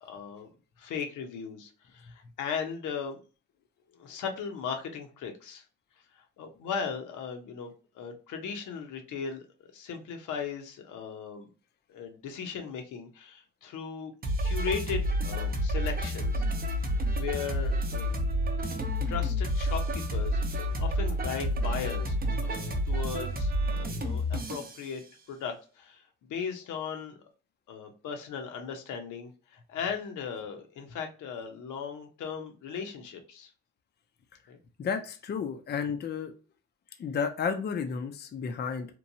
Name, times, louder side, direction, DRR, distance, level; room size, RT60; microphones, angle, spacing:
voice 1, 0.0-0.5 0.8-3.2 3.9-5.6 6.4-9.4 9.7-11.5 11.9-14.1 14.4-16.5 17.2-18.2 19.1-25.0 25.3-26.0 26.3-27.1 27.7-33.5 34.5-34.6, left 6 dB, 80° left, 4 dB, 0.8 m, -37 dB
sound 1, 14.2-24.8, equal, 30° right, 0.6 m, -29 dB
voice 2, 34.8-36.3 37.0-39.0, left 6 dB, 35° left, 6 dB, 0.4 m, -32 dB
2.9 x 2.2 x 2.6 m, 0.35 s
cardioid pair, 90°, 30 cm